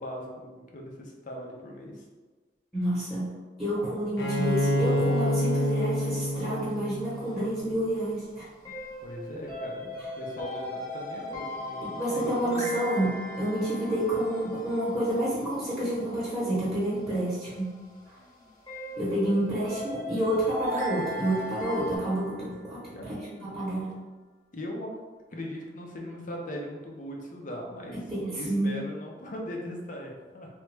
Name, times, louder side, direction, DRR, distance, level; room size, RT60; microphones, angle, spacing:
voice 1, 0.0-2.0 9.0-12.7 22.9-23.4 24.5-24.9 25.3-28.0 28.4-30.5, equal, 50° left, 0 dB, 0.6 m, -39 dB
voice 2, 2.7-3.3 3.6-8.5 11.8-17.8 19.0-22.9 23.4-23.9 27.9-28.7, right 1 dB, 10° right, -10 dB, 0.9 m, -29 dB
Bowed string instrument, 4.2-7.8, equal, 90° left, 0.6 m, -28 dB
sound 1, 4.2-22.0, left 1 dB, 20° left, 0.9 m, -40 dB
sound 2, 12.4-14.9 20.6-23.3, right 2 dB, 45° right, 0.6 m, -44 dB
3.1 x 2.3 x 3.2 m, 1.3 s
head